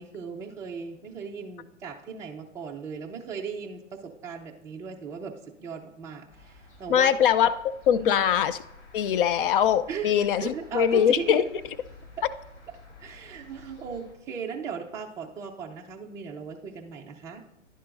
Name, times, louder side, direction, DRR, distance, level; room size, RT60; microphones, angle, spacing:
voice 1, 0.0-7.1 8.0-8.2 9.9-11.5 12.2-12.3 13.0-17.4, right 6 dB, 10° right, 0 dB, 0.5 m, -37 dB
sound 1, 6.3-14.1, left 2 dB, 65° left, 4.1 m, -51 dB
voice 2, 6.9-7.5 7.9-8.6 8.9-11.4, left 9 dB, 45° left, 14 dB, 0.6 m, -22 dB
10.5 x 10.5 x 2.5 m, 0.84 s
hypercardioid pair, 135°, 37 cm